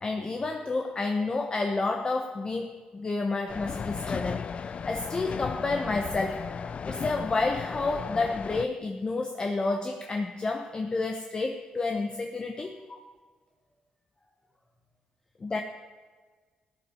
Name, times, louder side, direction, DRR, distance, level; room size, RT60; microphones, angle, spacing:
voice 1, 0.0-13.0 15.4-15.6, left 3 dB, 30° left, 4 dB, 1.0 m, -30 dB
sound 1, 3.5-8.7, left 6 dB, 45° left, 0.5 m, -35 dB
voice 2, 12.6-13.2 13.7-13.8 14.1-14.7, left 1 dB, 10° left, 0 dB, 4.4 m, -69 dB
14.5 x 8.8 x 6.9 m, 1.5 s
cardioid pair, 80°, 3 cm